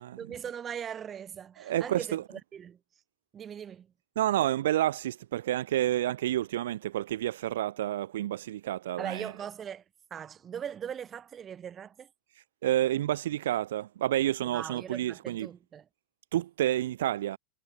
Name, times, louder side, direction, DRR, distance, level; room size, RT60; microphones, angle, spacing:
voice 1, 0.0-2.8 3.3-3.9 9.0-9.8 10.1-12.1 14.4-15.9, right 8 dB, 25° right, 5.7 m, -40 dB
voice 2, 1.6-2.2 4.2-9.3 12.6-15.5 16.3-17.4, right 13 dB, 60° right, 0.6 m, -29 dB
figure-of-eight pair, 90°, 0 cm